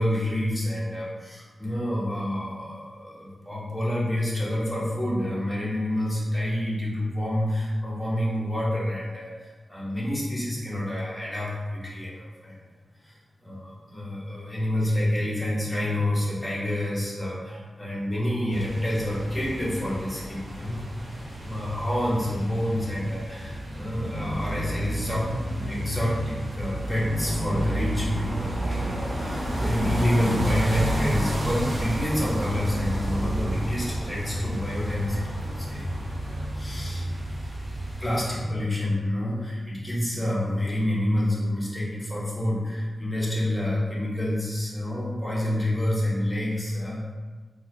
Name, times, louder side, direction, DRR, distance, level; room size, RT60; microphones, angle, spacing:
voice 1, 0.0-12.6 13.0-20.8 21.4-25.3 25.6-37.1 38.0-47.1, left 1 dB, 10° left, -7 dB, 1.0 m, -28 dB
sound 1, 18.5-38.4, right 1 dB, 45° right, 0.7 m, -30 dB
4.2 x 2.3 x 2.7 m, 1.3 s
wide cardioid pair, 120°, 0 cm